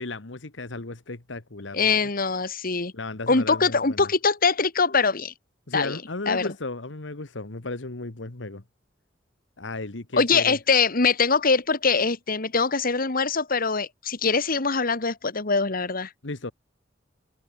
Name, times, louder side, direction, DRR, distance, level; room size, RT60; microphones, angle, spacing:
voice 1, 0.0-2.1 2.9-4.1 5.7-8.6 9.6-10.6 16.2-16.5, left 2 dB, 75° left, 1.6 m, -35 dB
voice 2, 1.7-2.9 3.3-5.3 5.7-6.0 6.3-6.5 10.1-16.1, left 4 dB, 50° left, 2.0 m, -23 dB
head